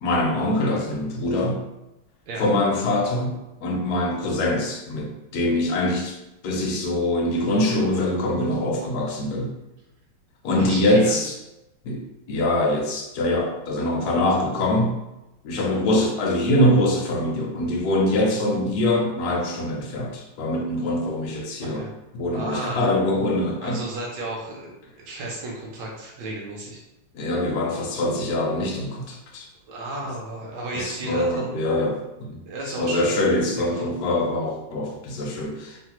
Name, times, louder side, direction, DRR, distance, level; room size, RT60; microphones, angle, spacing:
voice 1, 0.0-1.6 2.4-6.2 6.4-9.5 10.4-11.4 11.8-15.0 15.4-21.8 22.1-23.8 27.1-29.5 30.7-32.4 32.8-35.8, left 1 dB, 75° left, 1 dB, 0.9 m, -23 dB
voice 2, 10.6-11.2 18.2-18.3 21.6-21.9 22.3-22.8 23.6-24.7 25.0-26.8 29.7-31.5 32.4-33.1 33.5-33.9, right 2 dB, 75° right, -3 dB, 1.1 m, -33 dB
3.2 x 2.1 x 2.8 m, 0.94 s
omnidirectional pair, 2.1 m